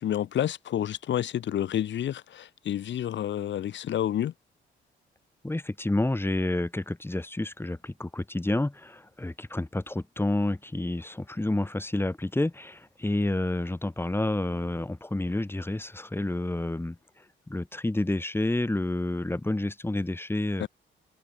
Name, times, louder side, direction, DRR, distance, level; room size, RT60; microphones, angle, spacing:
voice 1, 0.0-4.3 20.6-20.7, left 11 dB, 65° left, 2.1 m, -29 dB
voice 2, 5.4-17.0 17.5-20.7, left 2 dB, 10° left, 5.7 m, -29 dB
cardioid pair, 90°, 20 cm